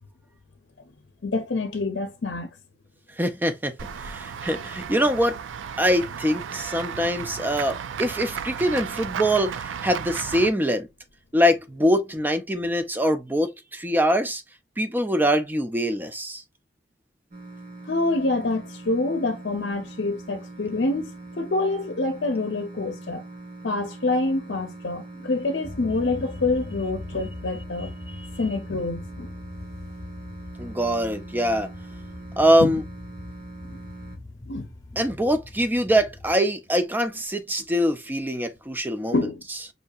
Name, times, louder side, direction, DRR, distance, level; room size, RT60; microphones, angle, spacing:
voice 1, 1.2-2.5 17.9-23.2 23.6-27.9 28.4-29.3 32.6-32.8 33.6-33.8 34.5-34.7 39.1-39.4, left 2 dB, 65° left, 0.7 m, -26 dB
voice 2, 3.2-3.7 4.0-5.4 5.8-10.9 11.3-14.4 14.8-16.4 28.2-28.3 30.6-31.7 32.4-32.8 35.0-39.3, equal, 10° right, 0.5 m, -23 dB
Run / Walk footsteps / Bell, 3.8-10.5, right 7 dB, 90° right, 0.4 m, -34 dB
sound 1, 17.3-34.2, right 2 dB, 50° right, 1.1 m, -42 dB
sound 2, 25.6-36.4, left 2 dB, 20° left, 0.9 m, -41 dB
5.4 x 2.7 x 2.3 m
head